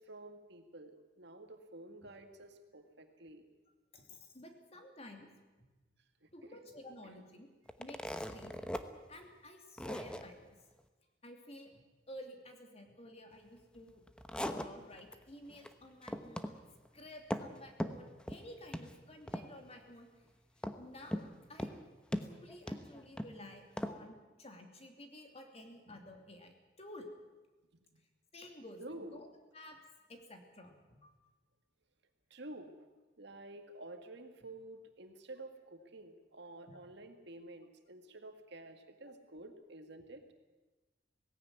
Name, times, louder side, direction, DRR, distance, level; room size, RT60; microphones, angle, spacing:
voice 1, 0.0-3.5 6.2-6.6 7.0-7.3 27.9-28.0 28.8-29.2 32.3-32.9 33.2-40.2, right 2 dB, 65° right, 6 dB, 2.0 m, -51 dB
voice 2, 3.9-5.3 5.6-5.7 6.3-7.5 7.8-8.7 9.1-10.6 11.2-11.8 12.1-14.0 14.4-16.7 16.9-20.1 20.8-21.2 21.5-21.8 22.2-27.1 28.3-28.8 29.1-29.8 30.1-31.1 36.7-36.8, left 1 dB, 35° left, 4 dB, 2.8 m, -52 dB
sound 1, 7.7-8.8 9.2-9.3 9.8-10.3 13.9-15.2 15.5-15.7 16.0-16.6 16.9-17.5 17.8-18.5 18.7-18.9 19.3-19.7 20.6-21.3 21.6-21.8 22.1-23.3 23.8-24.0, equal, 5° left, 1.0 m, -39 dB
18.0 x 16.0 x 9.5 m, 1.2 s
head